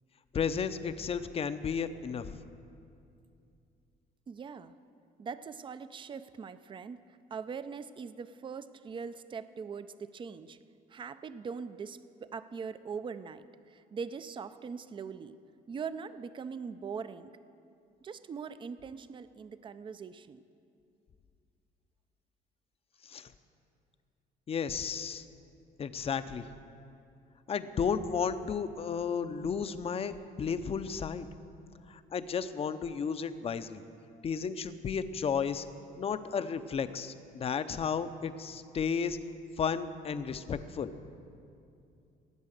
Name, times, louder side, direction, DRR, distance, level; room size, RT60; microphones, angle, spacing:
voice 1, 0.3-2.4 23.0-23.3 24.5-25.2 25.8-26.5 27.5-31.3 31.9-33.8 34.2-35.7 36.0-39.2 39.6-40.9, left 6 dB, 35° left, 11 dB, 0.6 m, -33 dB
voice 2, 4.3-4.7 5.2-10.6 10.9-15.4 15.7-17.3 18.0-20.4, right 6 dB, 30° right, 13 dB, 0.5 m, -41 dB
18.0 x 8.1 x 6.5 m, 2.5 s
cardioid pair, 110°, 17 cm